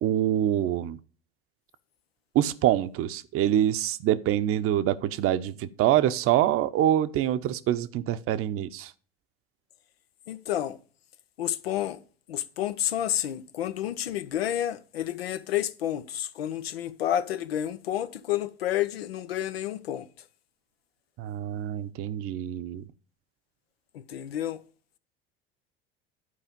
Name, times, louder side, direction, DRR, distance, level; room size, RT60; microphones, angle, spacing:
voice 1, 0.0-1.0 2.3-8.9 21.2-22.8, right 12 dB, 45° right, 0.9 m, -25 dB
voice 2, 10.3-10.8 11.4-12.0 12.3-20.1 23.9-24.6, left 11 dB, 80° left, 0.8 m, -30 dB
11.5 x 4.8 x 5.3 m
hypercardioid pair, 70°, 30 cm